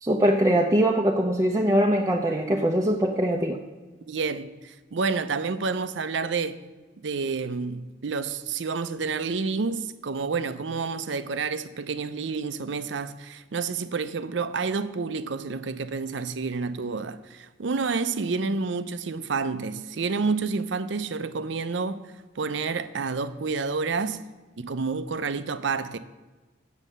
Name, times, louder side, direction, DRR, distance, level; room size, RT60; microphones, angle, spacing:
voice 1, 0.0-3.6, right 1 dB, 15° right, 0.5 m, -22 dB
voice 2, 4.1-6.6 7.0-22.0 22.4-24.2 24.6-26.0, right 4 dB, 70° right, 0.5 m, -29 dB
7.5 x 7.3 x 6.6 m
head